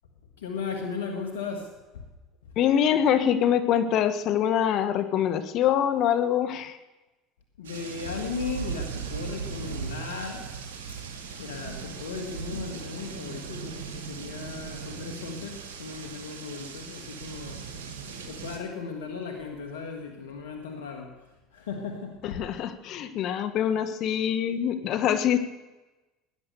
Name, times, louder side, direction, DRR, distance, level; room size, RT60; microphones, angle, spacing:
voice 1, 0.4-2.0 7.6-10.5 11.4-17.6 18.2-21.2 21.5-22.5, left 5 dB, 90° left, 4 dB, 1.8 m, -36 dB
voice 2, 2.6-6.8 22.2-25.4, left 9 dB, 60° left, 12 dB, 1.3 m, -24 dB
sound 1, 7.6-18.6, right 6 dB, 90° right, 2.5 m, -38 dB
18.0 x 11.0 x 6.9 m, 1.1 s
hypercardioid pair, 80°, 0 cm